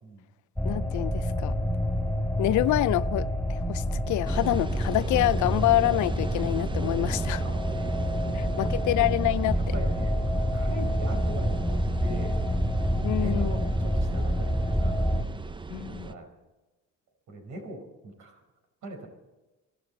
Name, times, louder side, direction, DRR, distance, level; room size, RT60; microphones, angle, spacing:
voice 1, 0.6-1.6 2.4-7.4 8.3-9.6 13.0-13.5 15.7-16.1, left 17 dB, 75° left, 0.5 m, -27 dB
sound 1, 0.6-15.2, equal, ahead, 2.6 m, -28 dB
sound 2, 4.2-16.1, right 4 dB, 15° right, 0.7 m, -38 dB
voice 2, 7.4-9.0 9.5-10.2 10.5-12.4 13.0-15.1 15.9-16.3 17.3-18.4 18.8-19.1, right 1 dB, 75° right, 5.1 m, -41 dB
23.5 x 12.5 x 4.3 m
cardioid pair, 90°, 30 cm